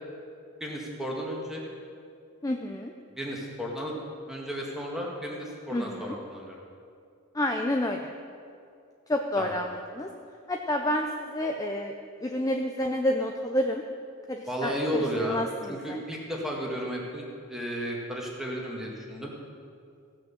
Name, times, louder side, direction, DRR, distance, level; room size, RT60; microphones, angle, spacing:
voice 1, 0.6-1.6 3.1-3.9 4.3-6.6 9.4-9.5 14.5-15.4 15.7-19.3, equal, ahead, -3 dB, 1.8 m, -33 dB
voice 2, 2.4-2.9 5.7-6.1 7.3-8.1 9.1-10.1 10.5-11.9 12.2-13.8 14.3-16.0, left 1 dB, 15° left, 3 dB, 0.5 m, -29 dB
16.0 x 6.1 x 7.3 m, 2.4 s
head